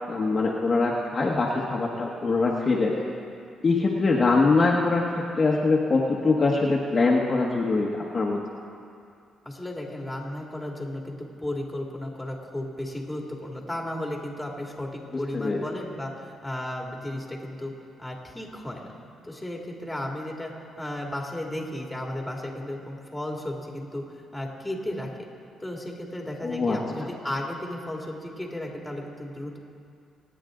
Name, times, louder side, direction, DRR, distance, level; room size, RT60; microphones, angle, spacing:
voice 1, 0.0-3.1 3.6-5.0 5.3-8.4 15.3-15.6 26.4-26.8, left 3 dB, 35° left, -3 dB, 1.5 m, -23 dB
voice 2, 9.4-17.7 18.0-19.0 19.2-20.5 20.8-25.1 25.6-29.6, left 1 dB, 5° left, -1 dB, 2.5 m, -34 dB
26.0 x 9.3 x 3.9 m, 2.4 s
cardioid pair, 90°, 0 cm